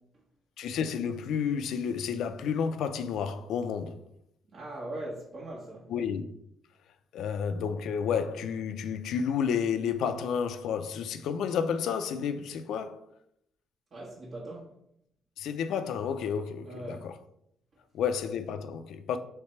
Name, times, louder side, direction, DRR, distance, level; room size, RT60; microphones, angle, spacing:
voice 1, 0.6-4.0 5.9-6.2 7.1-13.0 15.4-17.1 17.9-19.2, left 7 dB, 80° left, 0.4 m, -31 dB
voice 2, 4.5-5.9 13.9-14.7 16.6-17.1, right 1 dB, 50° right, 1.2 m, -40 dB
3.3 x 3.2 x 4.4 m
cardioid pair, 90°, 0 cm